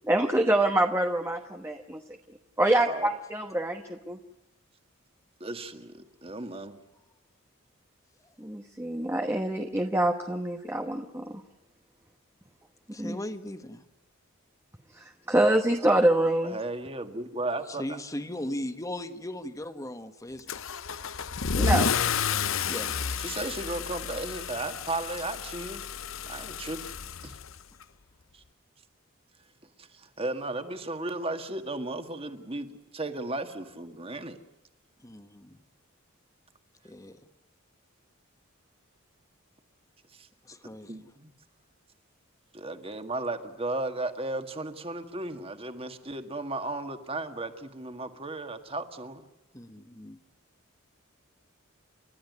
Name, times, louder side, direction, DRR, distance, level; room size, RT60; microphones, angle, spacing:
voice 1, 0.1-2.0 2.6-4.2 8.4-11.4 13.0-13.2 14.9-16.6 21.6-21.9, right 1 dB, 10° right, 4 dB, 1.1 m, -26 dB
voice 2, 5.4-6.8 16.4-18.0 23.2-25.8 26.3-26.9 27.2-27.3 28.3-28.4 29.8-34.4 40.1-40.3 40.9-41.3 42.5-49.3, right 2 dB, 25° right, 7 dB, 1.8 m, -35 dB
voice 3, 12.9-13.8 17.7-20.6 22.6-23.2 35.0-35.6 36.8-37.2 40.4-41.1 49.5-50.2, left 1 dB, 15° left, 9 dB, 1.4 m, -38 dB
Car / Engine starting / Accelerating revving vroom, 20.5-27.8, left 6 dB, 70° left, 0.8 m, -31 dB
30.0 x 13.0 x 9.5 m, 1.0 s
head